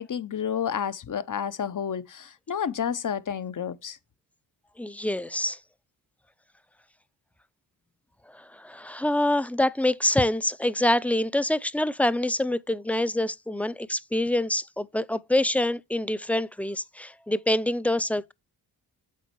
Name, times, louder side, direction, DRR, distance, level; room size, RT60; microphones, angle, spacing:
voice 1, 0.0-4.0, left 8 dB, 45° left, 0.9 m, -30 dB
voice 2, 4.8-5.6 8.5-18.3, left 1 dB, 5° left, 0.6 m, -26 dB
8.5 x 5.1 x 3.1 m
cardioid pair, 60°, 43 cm